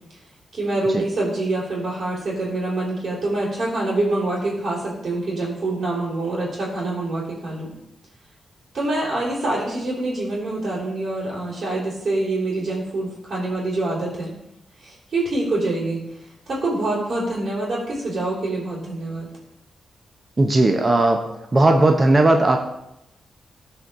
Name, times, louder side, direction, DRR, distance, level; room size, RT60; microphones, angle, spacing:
voice 1, 0.5-7.7 8.7-14.3 14.8-19.3, right 2 dB, 60° right, -9 dB, 3.4 m, -25 dB
voice 2, 20.4-21.2 21.5-22.6, right 2 dB, 40° right, 4 dB, 1.0 m, -16 dB
13.5 x 4.6 x 3.8 m, 0.84 s
supercardioid pair, 45°, 0 cm